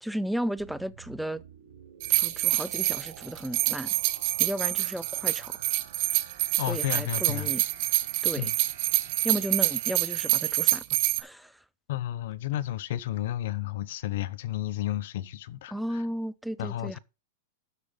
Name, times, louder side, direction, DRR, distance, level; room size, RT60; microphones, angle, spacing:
voice 1, 0.0-1.4 2.1-3.9 4.4-5.6 6.7-7.6 8.2-8.5 9.2-10.8 11.2-11.5 15.7-17.0, equal, ahead, 0.4 m, -34 dB
sound 1, 0.6-10.6, right 10 dB, 70° right, 3.4 m, -51 dB
sound 2, 2.0-11.2, right 17 dB, 50° right, 1.1 m, -27 dB
voice 2, 6.6-7.5 8.4-8.6 11.9-16.0 16.6-17.0, left 13 dB, 60° left, 0.8 m, -32 dB
12.5 x 4.3 x 5.2 m
supercardioid pair, 160°, 0 cm